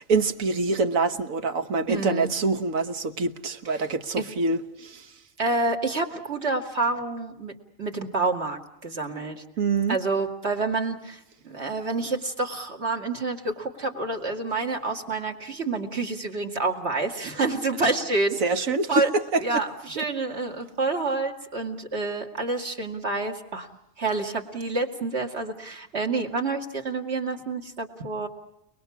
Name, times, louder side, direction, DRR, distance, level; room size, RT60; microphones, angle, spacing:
voice 1, 0.0-5.1 9.6-10.0 18.4-19.6 20.0-20.1, right 3 dB, 80° right, 9 dB, 1.7 m, -25 dB
voice 2, 1.9-2.3 4.2-4.3 5.4-7.5 7.8-9.4 9.9-18.4 18.9-19.1 19.4-23.7 24.0-28.3, right 3 dB, 50° right, 3 dB, 2.7 m, -28 dB
29.5 x 20.5 x 7.3 m, 0.84 s
omnidirectional pair, 1.4 m